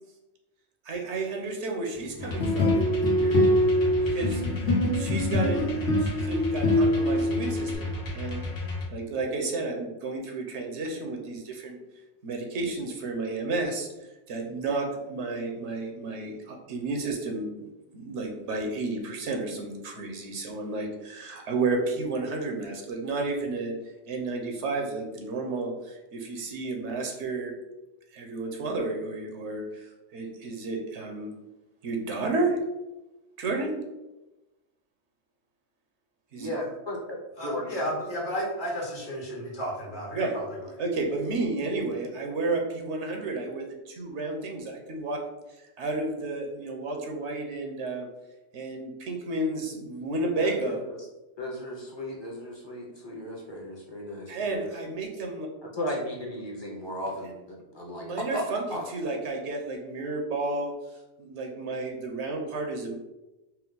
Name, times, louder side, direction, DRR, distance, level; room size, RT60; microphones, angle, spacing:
voice 1, 0.8-2.8 3.1-4.4 4.9-8.4 8.9-11.8 12.2-13.9 14.3-17.7 17.9-27.5 28.1-31.3 31.8-32.6 33.4-33.7 36.3-36.5 40.1-40.4 40.8-45.2 45.6-48.1 48.5-50.8 54.3-55.5 58.0-60.7 61.2-63.0, right 3 dB, 80° right, 2 dB, 1.0 m, -32 dB
sound 1, 2.2-7.8, left 1 dB, 90° left, 1.3 m, -24 dB
sound 2, 2.2-8.8, left 2 dB, 70° left, 1.2 m, -34 dB
voice 2, 36.3-37.2 37.4-37.8 50.3-51.0 51.4-54.7 55.7-58.8, left 1 dB, 25° left, -3 dB, 0.7 m, -35 dB
voice 3, 37.4-40.7, equal, 45° left, -3 dB, 1.2 m, -33 dB
4.4 x 2.0 x 3.8 m, 1.0 s
omnidirectional pair, 1.2 m